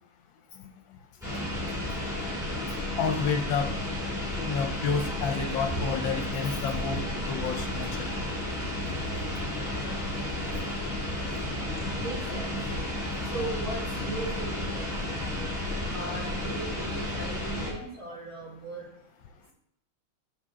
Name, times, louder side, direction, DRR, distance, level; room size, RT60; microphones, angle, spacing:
sound 1, 1.2-17.7, left 1 dB, ahead, 2.7 m, -32 dB
voice 1, 3.0-3.7 4.5-7.0 7.3-8.1 17.8-17.9, left 5 dB, 70° left, 5 dB, 1.3 m, -30 dB
voice 2, 12.0-12.7 13.2-15.4 15.9-18.9, right 2 dB, 70° right, -8 dB, 4.3 m, -38 dB
10.0 x 5.6 x 3.7 m, 0.78 s
omnidirectional pair, 2.3 m